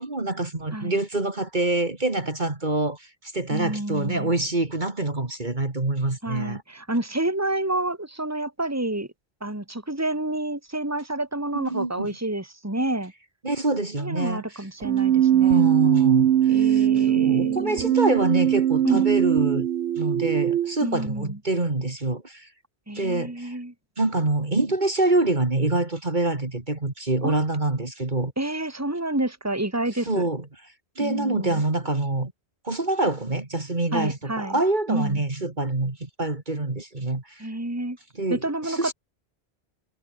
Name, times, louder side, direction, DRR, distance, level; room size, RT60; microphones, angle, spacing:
voice 1, 0.0-6.6 11.5-12.1 13.4-14.4 15.4-16.9 17.1-19.7 20.0-22.5 22.9-23.6 24.0-28.3 30.1-30.4 31.0-32.3 32.6-37.5 38.2-38.9, right 2 dB, 45° right, 2.8 m, -26 dB
voice 2, 3.5-4.3 6.2-9.1 9.4-13.1 14.0-15.7 16.5-18.0 18.8-19.1 20.8-21.4 22.9-23.7 27.2-27.3 28.4-30.2 31.0-31.6 33.9-34.6 34.9-35.2 37.4-38.0 38.3-38.9, right 1 dB, 15° right, 2.8 m, -29 dB
Keyboard (musical), 14.8-20.8, right 11 dB, 85° right, 1.0 m, -21 dB
omnidirectional pair, 1.1 m